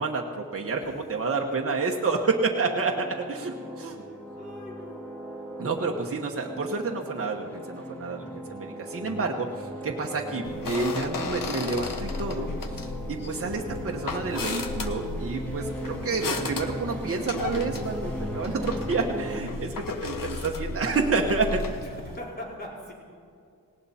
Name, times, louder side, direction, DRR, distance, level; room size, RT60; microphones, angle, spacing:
voice 1, 0.0-4.0 5.6-12.5 13.1-21.6, right 4 dB, 40° right, 0 dB, 1.2 m, -29 dB
sound 1, 2.5-19.4, right 1 dB, 5° left, 2.1 m, -38 dB
voice 2, 4.0-5.1 9.1-9.3 21.8-22.9, left 1 dB, 25° left, -5 dB, 4.7 m, -42 dB
sound 2, 10.4-22.2, left 4 dB, 65° left, 1.1 m, -35 dB
18.5 x 18.0 x 4.3 m, 2.3 s
wide cardioid pair, 115°, 36 cm